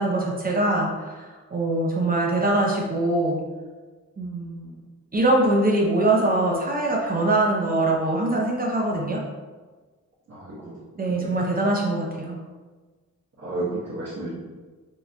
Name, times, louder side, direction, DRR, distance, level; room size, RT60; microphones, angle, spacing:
voice 1, 0.0-3.4 4.2-4.7 5.1-9.2 11.0-12.4, right 2 dB, 30° right, -2 dB, 0.6 m, -23 dB
voice 2, 10.3-10.6 10.9-11.3 13.4-14.3, right 2 dB, 50° right, -11 dB, 1.1 m, -32 dB
4.5 x 2.6 x 2.2 m, 1.3 s
cardioid pair, 85°, 32 cm